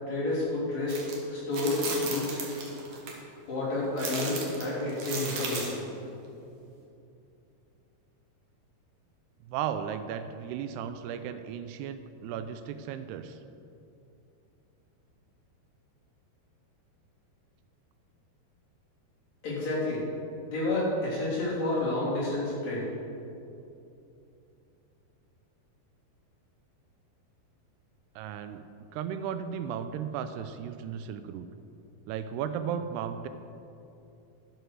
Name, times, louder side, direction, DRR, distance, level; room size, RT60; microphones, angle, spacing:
voice 1, 0.1-1.0 1.3-2.6 3.5-5.8 19.4-20.0 20.5-22.9, left 2 dB, 45° left, -8 dB, 4.3 m, -30 dB
sound 1, 0.9-1.1 1.5-3.1 4.0-5.8, right 4 dB, 55° right, 2.3 m, -35 dB
voice 2, 9.4-13.4 28.2-28.6 28.9-31.5 32.1-33.3, right 8 dB, 85° right, 10 dB, 2.6 m, -35 dB
11.0 x 7.9 x 6.3 m, 2.7 s
omnidirectional pair, 4.7 m